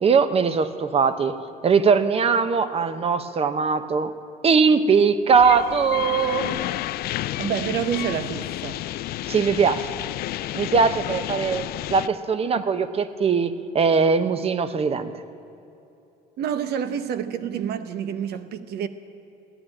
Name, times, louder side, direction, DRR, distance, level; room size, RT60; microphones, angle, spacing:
voice 1, 0.0-1.3 1.6-4.1 4.4-6.6 9.3-9.9 10.5-11.6 11.9-15.1, right 5 dB, 35° right, 12 dB, 0.8 m, -20 dB
sound 1, 5.3-12.1, left 15 dB, 65° left, 0.4 m, -31 dB
voice 2, 7.4-8.8 12.6-12.7 16.4-18.9, right 9 dB, 70° right, 11 dB, 0.9 m, -28 dB
15.0 x 10.5 x 8.9 m, 2.9 s
cardioid pair, 110°, 17 cm